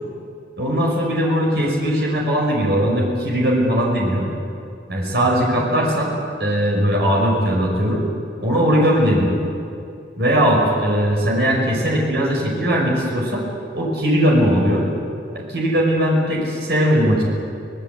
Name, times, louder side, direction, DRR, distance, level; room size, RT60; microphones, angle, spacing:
voice 1, 0.6-4.3 4.9-6.1 6.4-8.0 8.4-9.4 10.2-13.5 13.7-14.8 15.3-17.2, equal, 60° right, -1 dB, 5.6 m, -19 dB
24.5 x 18.5 x 8.4 m, 2.6 s
head